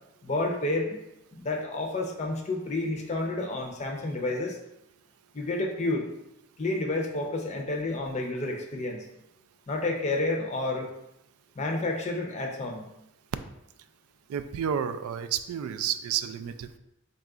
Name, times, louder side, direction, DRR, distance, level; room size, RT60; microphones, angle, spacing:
voice 1, 0.2-1.0 1.3-4.6 5.3-6.1 6.6-9.0 9.7-10.9 11.6-12.9, left 2 dB, 30° left, 1 dB, 0.5 m, -30 dB
voice 2, 14.3-16.8, right 8 dB, 90° right, 14 dB, 0.3 m, -31 dB
4.1 x 2.3 x 3.7 m, 0.83 s
head